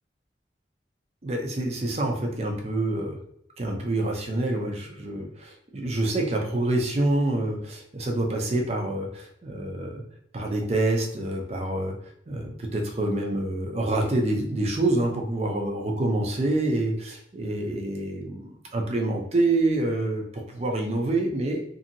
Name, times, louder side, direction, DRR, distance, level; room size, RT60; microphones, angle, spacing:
voice 1, 1.2-3.2 3.6-10.0 10.3-11.9 12.3-21.6, right 2 dB, 35° right, 1 dB, 0.5 m, -27 dB
2.7 x 2.6 x 2.6 m, 0.74 s
head